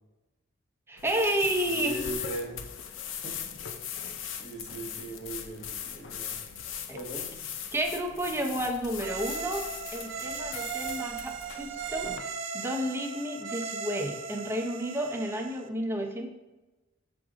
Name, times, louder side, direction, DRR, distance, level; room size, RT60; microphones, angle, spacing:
voice 1, 0.9-2.0 6.9-7.0 7.7-9.6 9.9-12.1 12.5-16.3, right 1 dB, 15° right, 3 dB, 0.7 m, -31 dB
sound 1, 1.0-12.2, left 8 dB, 75° left, 0.5 m, -39 dB
voice 2, 1.7-2.6 3.1-3.4 4.4-6.3 6.9-7.3, right 2 dB, 35° left, -1 dB, 1.3 m, -38 dB
sound 2, 9.0-15.7, right 5 dB, 80° right, 0.5 m, -37 dB
6.1 x 4.8 x 3.7 m, 1.1 s
head